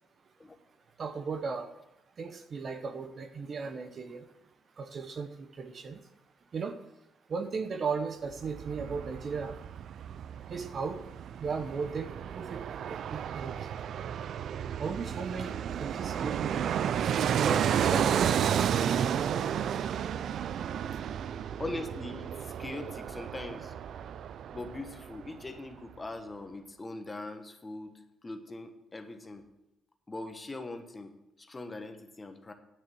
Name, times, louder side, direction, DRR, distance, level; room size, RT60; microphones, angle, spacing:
voice 1, 1.0-1.7 2.2-4.2 4.8-6.0 6.5-6.8 7.3-9.6 10.5-11.1 11.4-13.7 14.8-16.8 17.4-18.5 18.9-19.1, right 5 dB, 40° right, 9 dB, 0.8 m, -36 dB
Fixed-wing aircraft airplane, 8.3-25.3 25.6-25.7, right 9 dB, 55° right, 0.4 m, -32 dB
voice 2, 21.6-23.7 24.5-29.5 30.1-32.5, left 2 dB, 15° left, 6 dB, 1.1 m, -41 dB
9.8 x 6.6 x 7.0 m, 0.89 s
cardioid pair, 140°, 0 cm